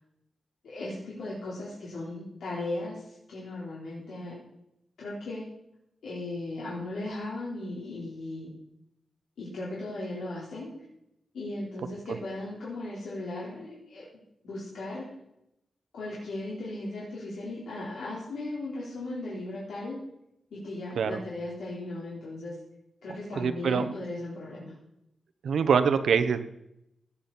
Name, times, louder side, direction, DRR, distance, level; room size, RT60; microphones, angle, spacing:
voice 1, 0.6-4.4 5.0-5.4 6.0-8.5 9.4-10.7 11.3-14.0 14.4-15.0 15.9-20.0 20.5-22.6 23.0-24.7, left 2 dB, 85° left, -7 dB, 4.5 m, -37 dB
voice 2, 23.3-23.9 25.4-26.4, right 6 dB, 75° right, 11 dB, 1.1 m, -24 dB
17.0 x 10.0 x 4.4 m, 0.81 s
wide cardioid pair, 140°, 0 cm